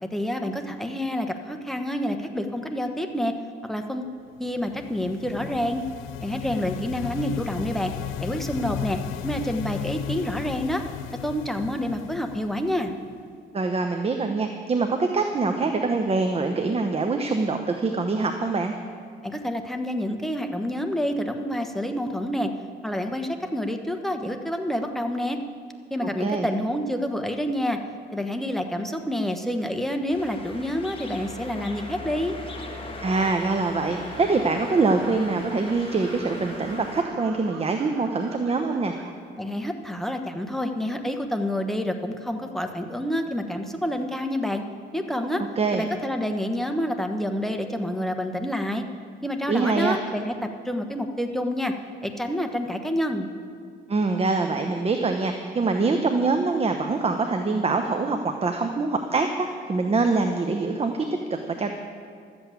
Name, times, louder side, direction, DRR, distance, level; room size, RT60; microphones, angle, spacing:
voice 1, 0.0-3.3 3.6-4.1 4.4-5.8 6.2-7.9 8.2-10.8 11.2-12.9 19.2-22.5 22.8-25.4 25.9-27.8 28.1-32.4 39.3-44.6 44.9-45.4 45.7-48.8 49.2-51.7 52.0-53.3, equal, ahead, 5 dB, 1.2 m, -28 dB
sound 1, 4.5-13.2, left 11 dB, 85° left, 0.5 m, -35 dB
voice 2, 13.5-18.8 26.2-26.5 33.0-39.0 45.6-45.8 49.5-50.0 53.9-61.1 61.5-61.7, right 3 dB, 30° right, 5 dB, 0.9 m, -24 dB
sound 2, 30.1-37.0, left 2 dB, 25° left, 1.6 m, -39 dB
sound 3, 34.1-39.1, right 5 dB, 80° right, 1.4 m, -43 dB
12.5 x 8.0 x 8.4 m, 2.2 s
cardioid pair, 90°, 20 cm